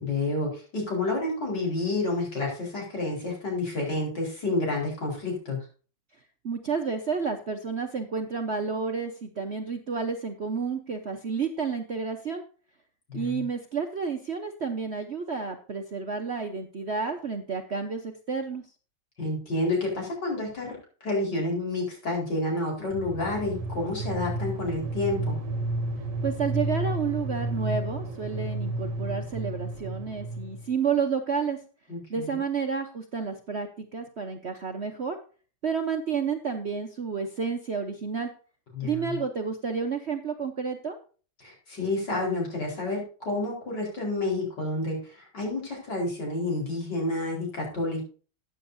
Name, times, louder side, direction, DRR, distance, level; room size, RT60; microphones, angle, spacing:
voice 1, 0.0-5.6 13.1-13.5 19.2-20.8 21.0-25.4 31.9-32.4 38.7-39.2 41.4-48.1, left 2 dB, 60° left, -1 dB, 5.1 m, -29 dB
voice 2, 6.4-12.4 13.1-18.6 26.2-31.6 32.1-35.2 35.6-38.3 38.8-41.0, right 5 dB, 45° right, 5 dB, 0.9 m, -30 dB
sound 1, 22.9-30.7, right 2 dB, 70° right, 1.7 m, -32 dB
14.5 x 9.0 x 2.7 m, 0.38 s
omnidirectional pair, 2.0 m